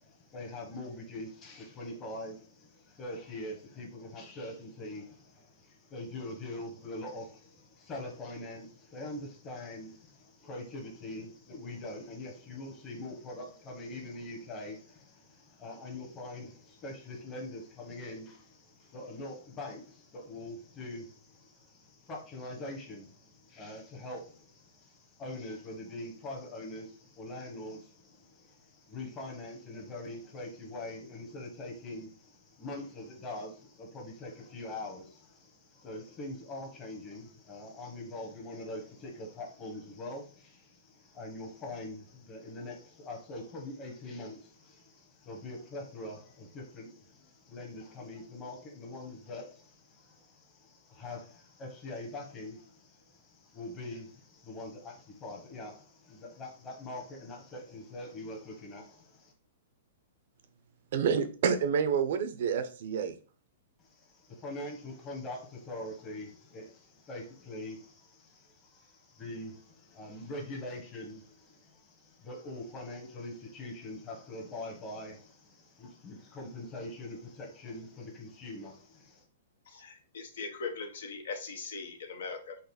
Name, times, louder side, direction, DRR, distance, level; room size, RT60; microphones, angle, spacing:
voice 1, 0.0-59.3 63.8-79.2, left 2 dB, 25° left, 1.1 m, -43 dB
voice 2, 60.9-63.2, right 7 dB, 65° right, 0.6 m, -28 dB
voice 3, 79.7-82.6, left 4 dB, 75° left, 1.0 m, -40 dB
4.0 x 2.6 x 4.2 m
hypercardioid pair, 135°, 0 cm